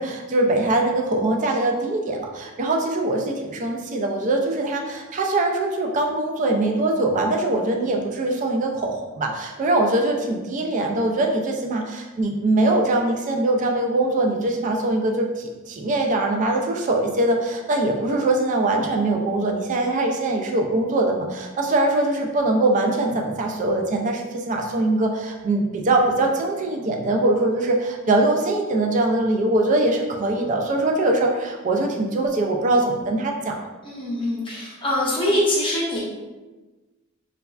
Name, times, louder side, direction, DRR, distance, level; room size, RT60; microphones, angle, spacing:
voice 1, 0.0-33.5, right 2 dB, 40° right, 2 dB, 0.3 m, -22 dB
voice 2, 33.8-36.0, left 1 dB, 25° left, -6 dB, 0.7 m, -23 dB
3.1 x 2.3 x 2.3 m, 1.2 s
head